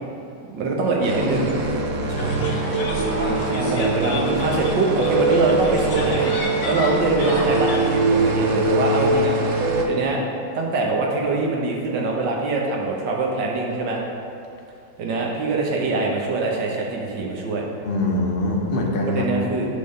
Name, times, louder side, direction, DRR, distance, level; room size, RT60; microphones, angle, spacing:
voice 1, 0.5-1.5 3.1-9.4 9.9-10.2 10.5-14.0 15.0-17.7 19.1-19.7, right 3 dB, 80° right, -1 dB, 1.8 m, -23 dB
sound 1, 1.0-9.9, right 3 dB, 60° right, 1.1 m, -22 dB
voice 2, 2.1-2.5 17.8-19.5, left 1 dB, 40° left, 0 dB, 0.9 m, -24 dB
sound 2, 2.2-7.9, left 3 dB, 60° left, 1.4 m, -32 dB
8.3 x 3.7 x 6.7 m, 2.7 s
omnidirectional pair, 2.0 m